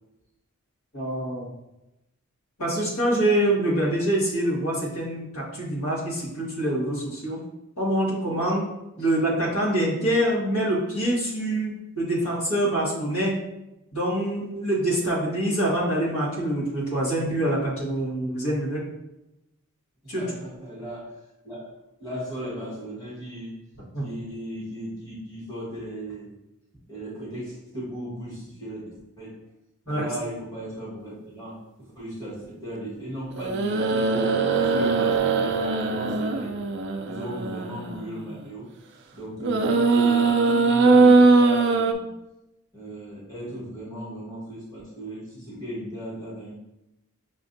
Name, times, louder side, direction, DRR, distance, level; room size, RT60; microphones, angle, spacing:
voice 1, 0.9-1.5 2.6-7.4 7.8-8.7 9.0-13.3 13.9-18.8 20.1-20.2 23.9-24.0 29.9-30.1, right 1 dB, 80° left, -5 dB, 1.4 m, -25 dB
voice 2, 20.0-23.6 24.0-26.4 26.9-29.4 29.8-34.1 34.5-36.7 37.0-38.7 39.1-42.1 42.7-46.5, right 1 dB, 15° left, -8 dB, 1.3 m, -37 dB
sound 1, 33.4-38.2 39.4-41.9, right 3 dB, 50° right, 0.3 m, -20 dB
5.9 x 2.5 x 2.5 m, 0.92 s
head